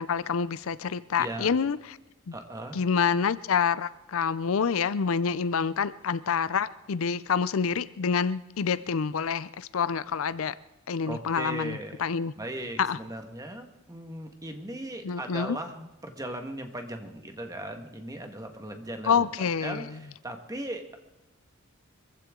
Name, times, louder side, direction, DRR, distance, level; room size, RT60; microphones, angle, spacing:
voice 1, 0.0-2.0 2.3-2.4 2.7-10.6 10.9-12.3 12.8-13.0 15.0-15.6 19.0-19.8, left 6 dB, 80° left, 17 dB, 0.5 m, -27 dB
voice 2, 1.2-1.5 2.3-2.8 11.1-12.0 12.4-21.0, right 1 dB, 15° right, 5 dB, 1.6 m, -38 dB
24.0 x 15.5 x 3.8 m, 1.0 s
head